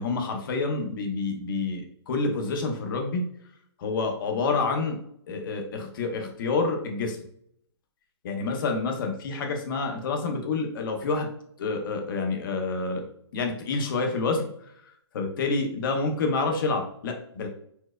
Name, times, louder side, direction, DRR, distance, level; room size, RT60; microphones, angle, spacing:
voice 1, 0.0-3.2 3.8-5.0 5.3-7.2 8.2-11.3 11.6-13.0 13.3-14.5 15.1-17.5, left 3 dB, 50° left, 4 dB, 0.7 m, -28 dB
4.4 x 2.0 x 2.3 m, 0.67 s
hypercardioid pair, 140°, 15 cm